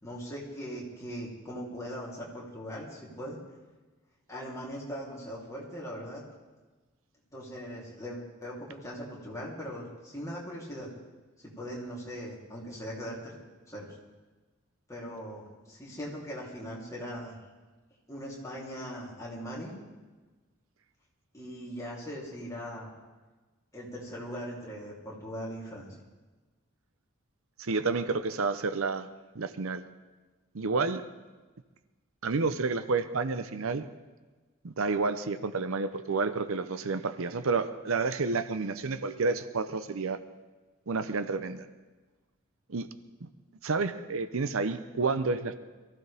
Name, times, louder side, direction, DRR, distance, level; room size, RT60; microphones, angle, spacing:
voice 1, 0.0-3.4 4.3-6.2 7.3-10.9 11.6-13.4 13.7-14.0 14.9-17.4 18.1-19.8 21.3-22.9 23.7-25.9, equal, 15° left, -5 dB, 3.2 m, -40 dB
voice 2, 27.6-29.1 29.3-29.8 30.5-31.0 32.2-33.9 34.6-40.2 40.9-41.6 42.7-42.9 43.2-43.3 43.6-45.5, right 4 dB, 75° right, 11 dB, 0.7 m, -30 dB
22.5 x 15.0 x 3.5 m, 1.3 s
head